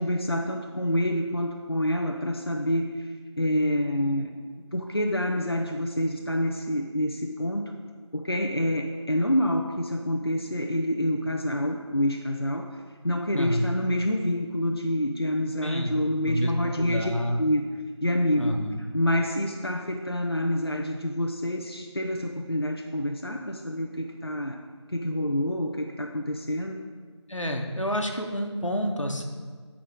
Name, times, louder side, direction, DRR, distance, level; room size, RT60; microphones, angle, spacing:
voice 1, 0.0-4.3 4.7-7.7 8.1-12.7 13.0-17.1 17.4-17.6 18.0-18.6 18.9-24.6 24.9-26.9, left 1 dB, 55° left, 2 dB, 0.7 m, -27 dB
voice 2, 13.3-13.7 15.6-17.4 18.4-18.8 27.3-29.2, equal, 90° left, 2 dB, 1.4 m, -29 dB
12.0 x 4.9 x 4.7 m, 1.5 s
figure-of-eight pair, 180°, 16 cm